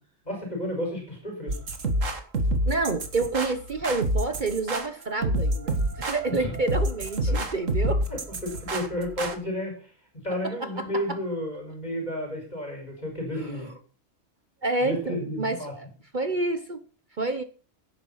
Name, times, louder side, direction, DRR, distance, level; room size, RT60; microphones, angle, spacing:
voice 1, 0.2-1.6 6.3-6.4 7.3-7.4 8.1-9.9 10.2-13.7 14.8-15.7, left 1 dB, 35° left, 1 dB, 5.1 m, -32 dB
sound 1, 1.5-9.3, right 1 dB, 85° right, 2.2 m, -27 dB
voice 2, 2.7-8.0 10.4-11.0 13.4-13.8 14.6-15.9 16.1-16.8 17.2-17.4, right 3 dB, 40° right, 10 dB, 1.1 m, -29 dB
16.5 x 9.5 x 5.7 m, 0.41 s
omnidirectional pair, 1.3 m